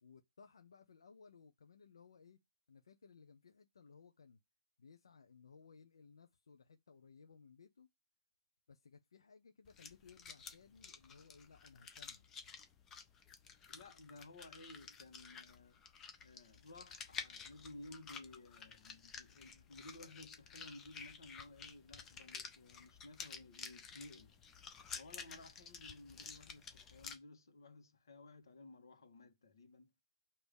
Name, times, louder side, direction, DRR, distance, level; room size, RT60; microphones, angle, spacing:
voice 1, 0.0-2.4 2.7-4.4 4.8-7.9 8.7-12.2, left 5 dB, 85° left, 0.8 m, -61 dB
sound 1, 9.6-27.2, left 6 dB, 10° left, 0.4 m, -52 dB
voice 2, 13.7-15.8 16.2-24.4 24.9-29.9, left 2 dB, 60° left, 1.4 m, -56 dB
6.4 x 2.9 x 5.2 m
hypercardioid pair, 180°, 3 cm